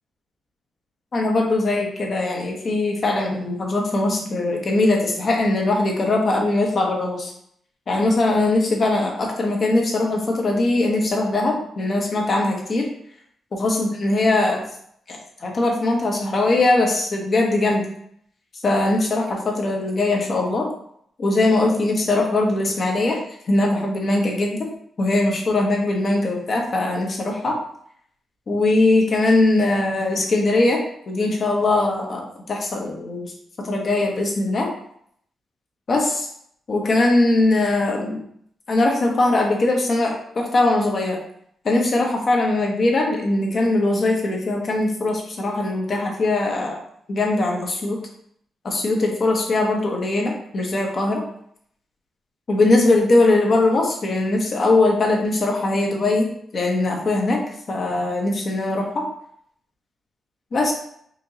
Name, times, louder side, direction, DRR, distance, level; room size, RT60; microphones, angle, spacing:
voice 1, 1.1-7.3 7.9-12.9 13.5-14.6 15.1-17.8 18.6-20.7 21.2-23.2 23.5-24.7 25.0-27.6 28.5-32.2 32.5-33.3 33.6-34.7 35.9-36.3 36.7-38.2 38.7-41.2 41.6-46.8 47.1-48.0 48.6-51.2 52.5-56.3 56.5-57.4 57.7-59.1 60.5-60.7, left 2 dB, 55° left, 0 dB, 1.1 m, -21 dB
4.4 x 2.9 x 2.7 m, 0.68 s
supercardioid pair, 55°, 0 cm